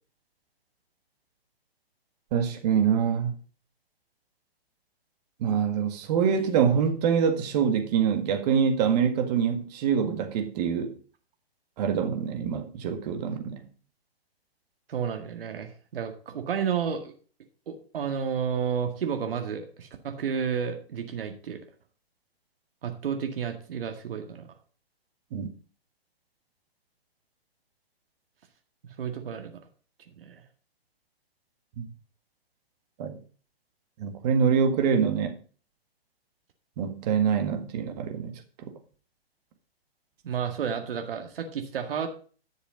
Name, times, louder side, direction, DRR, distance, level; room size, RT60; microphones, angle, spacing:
voice 1, 2.3-3.3 5.4-10.9 11.8-13.6 25.3-25.5 31.8-31.9 33.0-33.1 34.0-35.3 36.8-38.3, right 7 dB, 40° right, 1.8 m, -25 dB
voice 2, 14.9-17.1 17.7-21.6 22.8-24.5 28.8-29.6 30.2-30.4 40.2-42.1, right 7 dB, 65° right, 2.0 m, -31 dB
10.5 x 6.9 x 5.2 m
hypercardioid pair, 135°, 31 cm